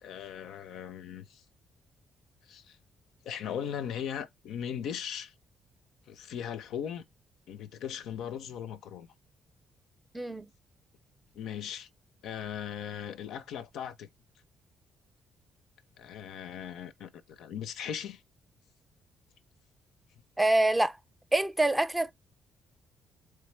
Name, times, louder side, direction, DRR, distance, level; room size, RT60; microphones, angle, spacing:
voice 1, 0.0-1.4 2.5-2.8 3.2-5.3 6.1-7.0 7.5-9.1 11.3-11.9 12.2-14.1 16.0-18.2, left 9 dB, 80° left, 0.5 m, -38 dB
voice 2, 20.4-21.0 21.3-22.1, right 2 dB, 10° right, 0.5 m, -25 dB
3.4 x 3.3 x 3.2 m
cardioid pair, 90°, 0 cm